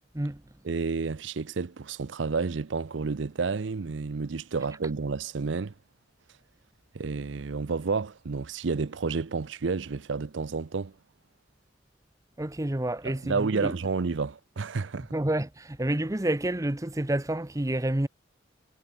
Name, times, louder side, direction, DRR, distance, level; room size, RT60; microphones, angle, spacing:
voice 1, 0.6-5.7 6.9-10.9 13.0-15.1, right 4 dB, 80° right, 0.6 m, -30 dB
voice 2, 12.4-13.7 15.0-18.1, right 1 dB, 15° right, 0.8 m, -29 dB
head